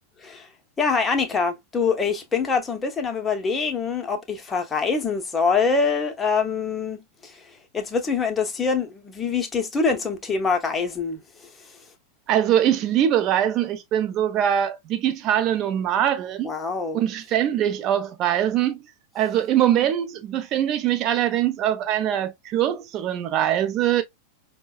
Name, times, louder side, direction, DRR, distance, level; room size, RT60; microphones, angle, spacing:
voice 1, 0.8-7.4 7.7-11.2 16.4-17.0, left 5 dB, 15° left, 0.8 m, -24 dB
voice 2, 12.3-16.5 16.9-18.8 19.1-24.0, right 11 dB, 35° right, 0.6 m, -22 dB
5.4 x 2.2 x 2.3 m
figure-of-eight pair, 90°, 0 cm